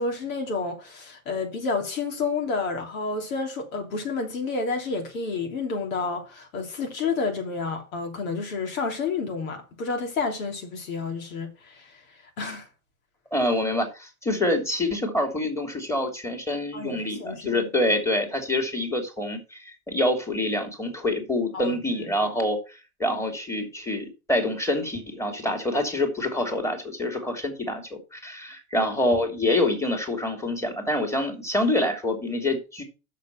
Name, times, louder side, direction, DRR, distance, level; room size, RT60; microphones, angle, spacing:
voice 1, 0.0-12.0 12.4-12.7 16.7-17.7 21.5-22.1 28.7-28.9, left 4 dB, 70° left, 3.1 m, -30 dB
voice 2, 13.3-32.8, left 1 dB, 5° left, 2.8 m, -26 dB
6.6 x 6.6 x 5.9 m
hypercardioid pair, 100°, 42 cm